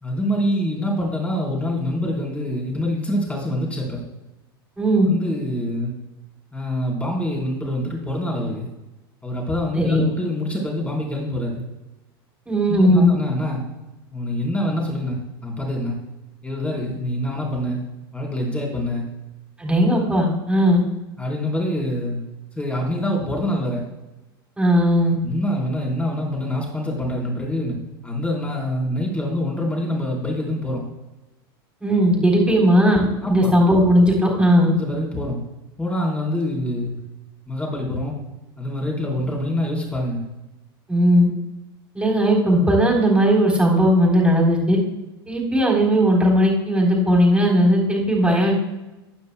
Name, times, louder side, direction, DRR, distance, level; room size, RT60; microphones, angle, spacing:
voice 1, 0.0-4.0 5.0-5.9 6.5-8.7 9.2-11.6 12.7-13.6 14.1-16.0 16.4-17.8 18.1-19.0 21.2-22.2 22.6-23.8 25.2-27.8 28.0-30.8 32.6-32.7 33.2-33.6 34.7-35.4 35.8-37.0 37.5-38.2 38.6-40.2, left 1 dB, 10° left, -2 dB, 4.0 m, -25 dB
voice 2, 4.8-5.1 9.7-10.0 12.5-13.1 19.6-20.8 24.6-25.2 31.8-34.7 40.9-41.3 41.9-44.8 45.3-48.5, equal, 10° right, -1 dB, 3.8 m, -17 dB
15.0 x 9.7 x 2.3 m, 1.0 s
hypercardioid pair, 90°, 13 cm